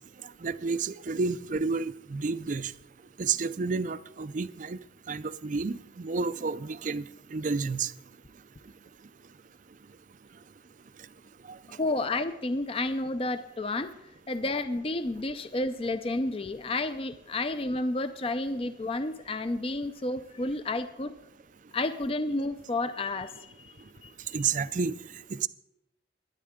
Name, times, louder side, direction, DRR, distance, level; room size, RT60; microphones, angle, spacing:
voice 1, 0.4-2.7 3.2-4.8 5.1-7.0 7.3-7.9 11.5-11.6 24.3-25.0 25.3-25.5, right 4 dB, 40° right, 14 dB, 0.4 m, -30 dB
voice 2, 11.7-13.9 14.3-21.1 21.7-23.7 24.0-24.1, left 2 dB, 30° left, 11 dB, 0.5 m, -31 dB
22.5 x 9.5 x 3.7 m, 0.90 s
head